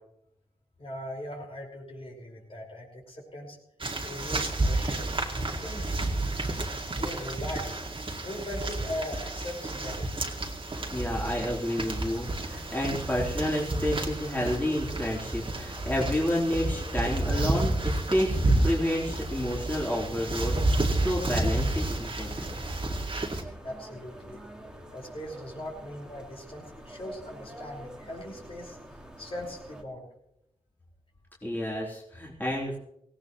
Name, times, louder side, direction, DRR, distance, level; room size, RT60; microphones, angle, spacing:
voice 1, 0.8-3.6 4.0-5.1 5.6-5.9 6.9-7.7 8.2-10.2 23.6-24.4 24.9-28.8 29.2-30.1, left 1 dB, 40° left, -2 dB, 5.3 m, -40 dB
sound 1, 3.8-23.4, right 2 dB, 40° right, 2.3 m, -30 dB
sound 2, 10.7-29.8, right 1 dB, 5° right, 2.2 m, -47 dB
voice 2, 10.9-22.5 31.4-32.8, left 1 dB, 15° left, -5 dB, 3.7 m, -30 dB
18.0 x 17.0 x 3.2 m, 0.79 s
cardioid pair, 60°, 14 cm